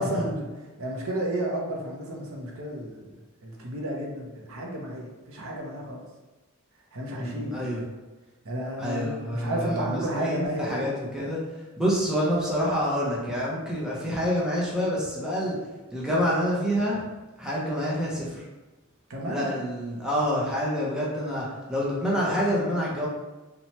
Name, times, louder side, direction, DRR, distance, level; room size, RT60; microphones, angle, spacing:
voice 1, 0.0-3.1 3.4-6.0 6.9-7.6 8.4-10.9 19.1-19.5, right 1 dB, 70° right, -1 dB, 0.6 m, -32 dB
voice 2, 7.1-7.8 8.8-11.4 11.8-15.6 15.9-17.0 17.4-18.4 19.3-23.1, equal, 5° right, -6 dB, 0.5 m, -27 dB
2.8 x 2.1 x 2.9 m, 1.1 s
head